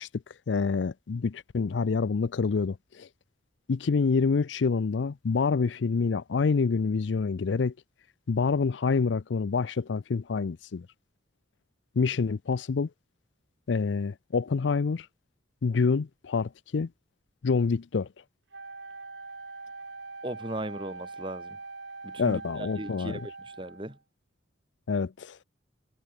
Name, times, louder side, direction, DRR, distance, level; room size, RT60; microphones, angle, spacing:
voice 1, 0.0-3.1 3.7-7.7 8.3-10.9 12.0-12.9 13.7-15.1 15.6-16.9 17.4-18.1 22.2-23.2 24.9-25.4, left 4 dB, 75° left, 0.5 m, -27 dB
Wind instrument woodwind instrument, 18.5-24.0, right 3 dB, 75° right, 7.6 m, -43 dB
voice 2, 20.2-21.6 22.0-22.4 22.8-24.0, right 1 dB, 25° right, 2.8 m, -37 dB
head